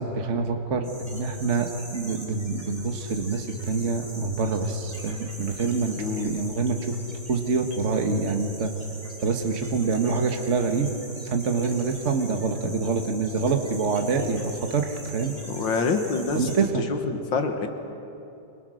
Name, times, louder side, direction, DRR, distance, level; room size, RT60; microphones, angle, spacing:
voice 1, 0.0-7.0 7.3-8.7 9.2-10.9 11.2-15.3 16.3-16.8, right 4 dB, 40° right, 5 dB, 1.7 m, -26 dB
sound 1, 0.8-16.7, right 1 dB, 20° right, 3.6 m, -43 dB
voice 2, 6.0-6.4 15.5-16.5 16.9-17.7, left 4 dB, 85° left, 6 dB, 2.4 m, -26 dB
27.0 x 25.5 x 6.4 m, 2.8 s
omnidirectional pair, 2.0 m